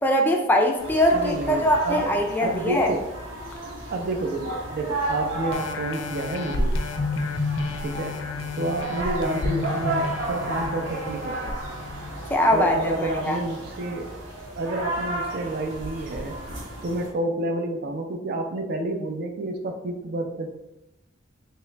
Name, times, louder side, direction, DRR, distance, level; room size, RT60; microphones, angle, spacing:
voice 1, 0.0-2.9 12.3-13.4, equal, 10° left, 2 dB, 0.3 m, -22 dB
sound 1, 0.8-17.1, right 2 dB, 85° right, 1.0 m, -33 dB
voice 2, 1.1-2.1 2.4-3.1 3.9-6.8 7.8-8.2 8.6-11.6 12.5-14.1 14.5-16.4 16.8-20.5, right 2 dB, 55° right, 4 dB, 0.5 m, -29 dB
sound 2, 5.5-12.7 13.2-13.3, left 2 dB, 75° left, 0.5 m, -30 dB
3.7 x 2.9 x 3.2 m, 0.94 s
head